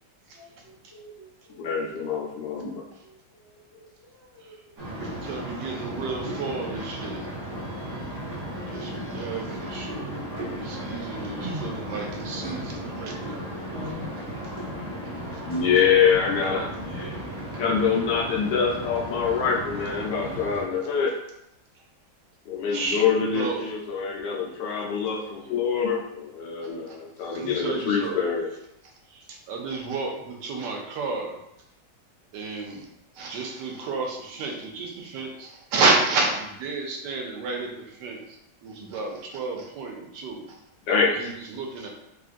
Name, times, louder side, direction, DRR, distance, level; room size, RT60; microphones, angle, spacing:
voice 1, 0.3-1.7 2.3-2.6 3.0-5.3 8.4-8.9 10.3-10.7 11.3-11.6 12.3-12.6 13.7-14.1 16.6-17.3 26.7-27.0, right 1 dB, 30° right, -9 dB, 0.5 m, -44 dB
voice 2, 1.6-2.8 15.5-16.7 17.6-21.1 22.5-28.5 40.9-41.1, left 6 dB, 85° left, -2 dB, 1.4 m, -25 dB
sound 1, 4.8-20.6, equal, 60° right, 1.3 m, -35 dB
voice 3, 5.0-7.3 8.7-10.2 10.6-13.5 22.7-23.0 23.3-23.6 26.9-27.0 27.3-28.2 29.1-31.4 32.3-32.8 33.2-37.7 38.0-38.2 38.6-40.6 41.1-41.9, right 3 dB, 80° right, 1 dB, 1.2 m, -30 dB
3.4 x 2.4 x 2.5 m, 0.83 s
omnidirectional pair, 1.9 m